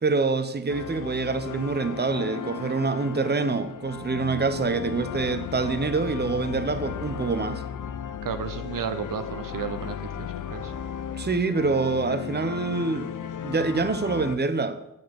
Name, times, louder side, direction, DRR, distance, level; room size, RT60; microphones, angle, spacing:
voice 1, 0.0-7.6 11.2-13.1 13.4-14.8, right 4 dB, 30° right, 0.9 m, -26 dB
sound 1, 0.7-14.4, left 8 dB, 70° left, 0.6 m, -35 dB
voice 2, 8.2-10.7, right 7 dB, 80° right, 0.7 m, -33 dB
7.8 x 7.8 x 7.0 m
cardioid pair, 60°, 32 cm